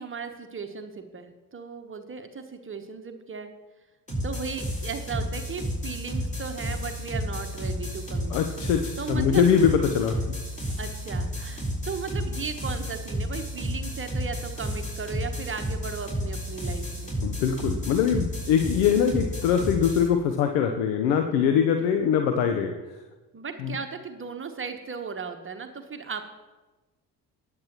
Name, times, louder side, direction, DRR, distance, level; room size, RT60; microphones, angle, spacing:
voice 1, 0.0-3.5 4.2-8.3 9.0-9.4 10.8-17.1 23.3-26.3, right 5 dB, 25° right, 7 dB, 1.1 m, -36 dB
sound 1, 4.1-20.1, equal, 15° left, 4.2 m, -32 dB
voice 2, 8.3-10.3 17.2-22.7 23.6-23.7, left 7 dB, 60° left, 6 dB, 0.9 m, -23 dB
19.0 x 7.8 x 3.0 m, 1.2 s
figure-of-eight pair, 50°, 49 cm